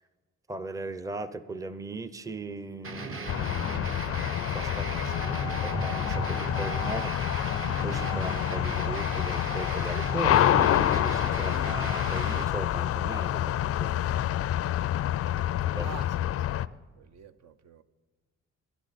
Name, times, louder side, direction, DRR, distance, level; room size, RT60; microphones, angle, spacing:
voice 1, 0.5-4.8 5.2-7.2 7.8-13.9 15.4-15.9, right 2 dB, 10° right, 0.6 m, -38 dB
sound 1, 2.8-12.4, right 3 dB, 45° right, 1.2 m, -37 dB
sound 2, 3.3-16.7, left 12 dB, 50° left, 0.4 m, -28 dB
voice 2, 4.7-7.0 15.8-16.3 16.7-17.8, right 7 dB, 60° right, 0.6 m, -48 dB
sound 3, 4.9-11.1, right 3 dB, 90° right, 2.7 m, -43 dB
19.5 x 10.5 x 4.2 m
cardioid pair, 90°, 30 cm